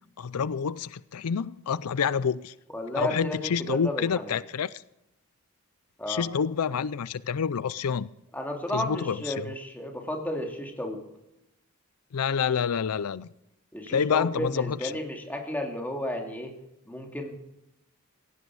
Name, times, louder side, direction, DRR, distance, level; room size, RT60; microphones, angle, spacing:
voice 1, 0.2-2.5 3.0-4.7 6.1-8.1 8.7-9.5 12.1-13.3 13.9-14.8, left 6 dB, 85° left, 0.5 m, -28 dB
voice 2, 2.7-4.4 6.0-6.3 8.3-11.0 13.7-16.6 16.9-17.3, left 1 dB, 10° left, 2.4 m, -33 dB
17.0 x 15.5 x 4.8 m
head